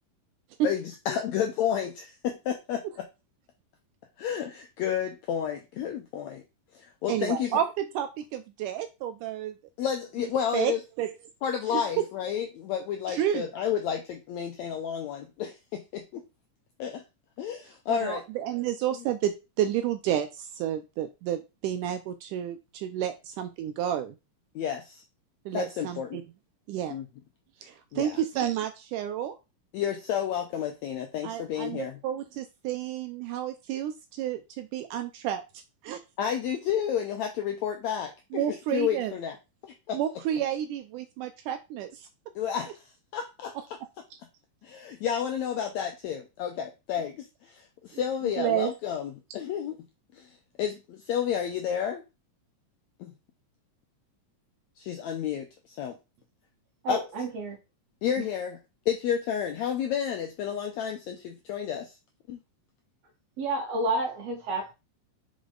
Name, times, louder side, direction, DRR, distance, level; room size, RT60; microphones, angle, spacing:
voice 1, 0.6-2.8 4.2-6.4 6.7-7.6 9.8-10.8 11.4-16.2 16.8-17.0 17.4-18.2 24.6-25.0 25.5-26.2 26.9-27.0 27.9-28.2 29.7-32.0 36.2-39.4 39.6-40.0 42.4-43.5 44.6-49.8 50.1-52.0 53.0-53.1 54.8-56.0 56.9-57.0 58.0-58.6 58.9-61.9 62.3-62.4, left 9 dB, 85° left, 1.6 m, -31 dB
voice 2, 7.1-9.6 10.5-11.1 11.7-12.1 13.1-13.5 17.9-24.2 25.5-26.2 26.7-26.9 27.6-29.4 31.2-35.4 35.8-36.0 38.3-39.1 39.9-42.1 47.9-48.0 48.4-48.7, right 11 dB, 80° right, 1.9 m, -30 dB
voice 3, 56.8-57.6 58.2-58.3 63.4-64.7, right 2 dB, 55° right, 2.2 m, -30 dB
5.1 x 5.0 x 3.8 m
omnidirectional pair, 4.0 m